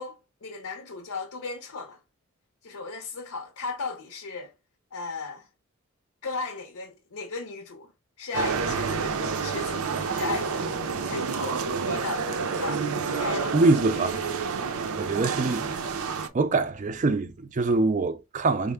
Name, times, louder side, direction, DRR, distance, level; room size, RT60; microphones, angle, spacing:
voice 1, 0.0-2.0 2.6-4.5 4.9-5.5 6.2-7.9 8.2-10.7 11.1-12.9 13.1-13.6 14.0-14.1, left 4 dB, 85° left, 0.6 m, -36 dB
sound 1, 8.3-16.3, right 5 dB, 85° right, 0.5 m, -29 dB
voice 2, 13.5-14.2 15.0-16.0 16.3-18.7, right 3 dB, 35° right, 0.4 m, -24 dB
4.3 x 2.0 x 3.4 m
head